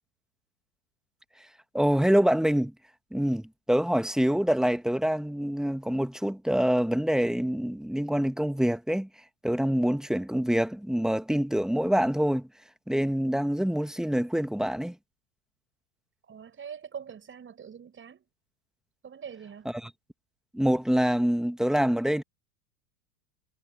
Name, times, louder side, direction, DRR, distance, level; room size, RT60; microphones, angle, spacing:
voice 1, 1.7-2.7 3.1-9.1 9.4-12.5 12.9-14.9 19.7-19.9 20.5-22.2, equal, ahead, 1.4 m, -25 dB
voice 2, 16.2-18.2 19.0-19.7, right 7 dB, 25° right, 5.9 m, -43 dB
hypercardioid pair, 110°, 44 cm